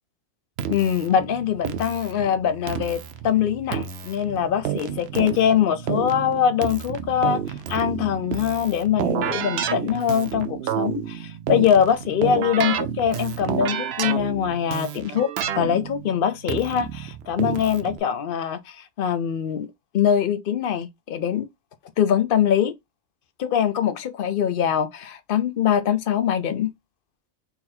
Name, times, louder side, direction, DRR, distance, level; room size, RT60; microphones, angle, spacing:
Keyboard (musical), 0.6-18.0, right 9 dB, 65° right, 0.7 m, -30 dB
voice 1, 0.7-7.4 7.7-19.7 19.9-21.5 22.0-22.7 23.4-26.7, left 9 dB, 55° left, 0.7 m, -23 dB
4.1 x 2.5 x 4.2 m
omnidirectional pair, 1.4 m